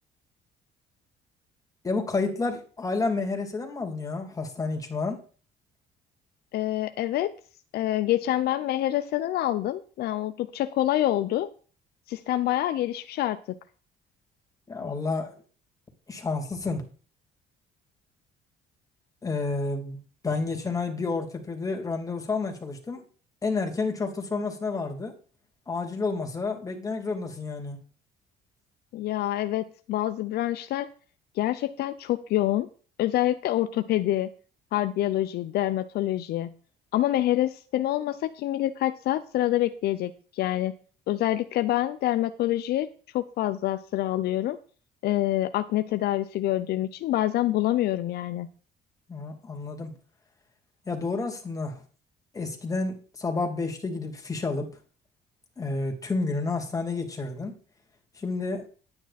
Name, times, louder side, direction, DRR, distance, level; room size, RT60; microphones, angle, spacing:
voice 1, 1.8-5.2 14.7-15.4 16.1-16.8 19.2-23.0 23.4-25.2 25.7-27.8 49.1-49.9 50.9-51.8 52.3-54.7 55.6-57.5 58.2-58.7, left 3 dB, 20° left, 3 dB, 2.7 m, -30 dB
voice 2, 6.5-7.3 7.7-11.5 12.1-13.6 28.9-30.9 31.4-32.7 33.0-34.3 34.7-36.5 36.9-40.7 41.1-42.9 43.1-44.6 45.0-48.5, left 14 dB, 70° left, 11 dB, 0.7 m, -26 dB
10.5 x 8.9 x 4.2 m, 0.39 s
cardioid pair, 110°, 17 cm